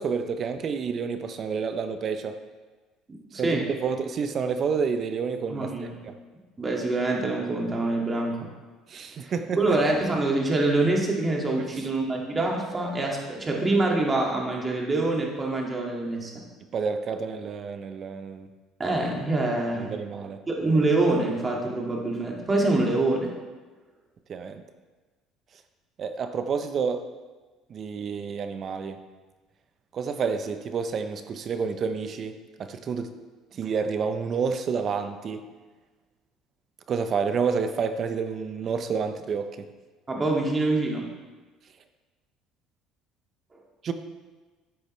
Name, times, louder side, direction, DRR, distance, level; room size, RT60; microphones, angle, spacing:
voice 1, 0.0-2.4 3.3-6.2 8.9-9.8 11.6-11.7 16.7-18.5 19.8-20.4 24.3-24.6 26.0-27.1 27.7-29.0 29.9-33.1 33.5-35.5 36.9-39.7 43.8-43.9, right 5 dB, 45° right, 9 dB, 0.7 m, -29 dB
voice 2, 3.1-3.7 5.5-6.0 6.6-8.5 9.2-16.4 18.8-19.9 20.5-23.3 40.1-41.1, right 2 dB, 25° right, -1 dB, 2.1 m, -25 dB
10.5 x 8.4 x 3.2 m, 1.3 s
supercardioid pair, 100°, 0 cm